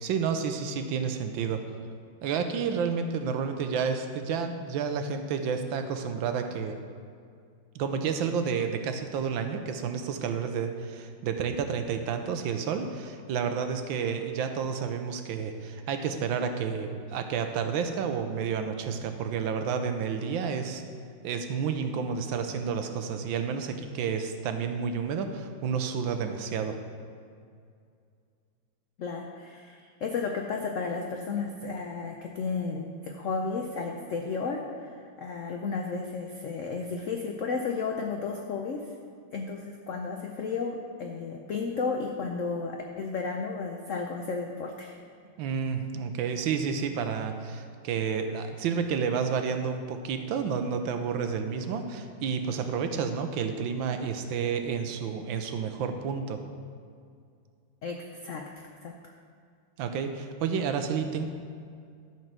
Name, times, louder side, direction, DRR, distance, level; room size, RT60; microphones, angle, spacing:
voice 1, 0.0-1.6 2.2-6.8 7.7-20.8 21.2-26.8 45.4-56.4 59.8-61.3, right 6 dB, 80° right, 7 dB, 1.5 m, -30 dB
voice 2, 29.0-38.9 39.3-45.0 57.8-59.0, left 4 dB, 75° left, 2 dB, 0.7 m, -33 dB
12.5 x 4.5 x 6.0 m, 2.3 s
omnidirectional pair, 2.1 m